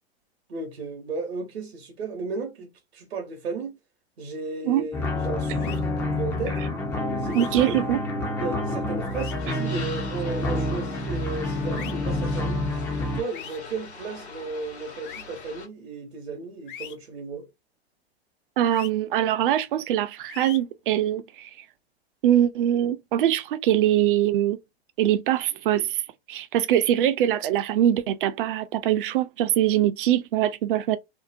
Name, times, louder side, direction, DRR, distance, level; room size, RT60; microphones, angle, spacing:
voice 1, 0.5-3.8 4.2-6.6 7.2-7.9 8.3-12.6 13.0-17.5, right 3 dB, 70° right, 0.9 m, -34 dB
sound 1, 4.9-13.2, left 1 dB, 10° left, 0.3 m, -28 dB
sound 2, 5.6-5.8 7.3-7.5 9.1-9.3 11.7-11.9 13.3-13.6 15.0-15.2 16.7-16.9 18.7-18.9 20.3-20.6, left 10 dB, 50° left, 0.6 m, -40 dB
voice 2, 7.3-8.0 18.6-21.5 22.2-24.6 25.0-26.0 26.3-31.0, right 11 dB, 55° right, 0.5 m, -23 dB
sound 3, 9.4-15.7, left 3 dB, 85° left, 0.9 m, -42 dB
2.7 x 2.0 x 2.5 m
figure-of-eight pair, 100°, 32 cm